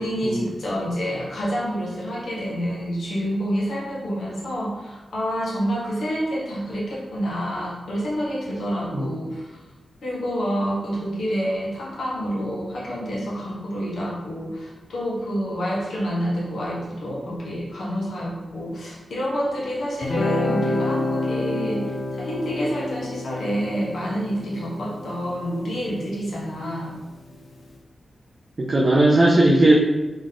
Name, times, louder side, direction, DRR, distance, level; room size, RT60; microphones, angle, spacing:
voice 1, 0.0-9.6 10.0-27.0, equal, 70° left, -5 dB, 1.3 m, -28 dB
Guitar, 20.0-27.2, left 2 dB, 50° left, 0.5 m, -29 dB
voice 2, 28.6-29.8, right 1 dB, 30° right, -4 dB, 0.5 m, -17 dB
4.0 x 3.1 x 3.8 m, 1.1 s
wide cardioid pair, 175°, 0 cm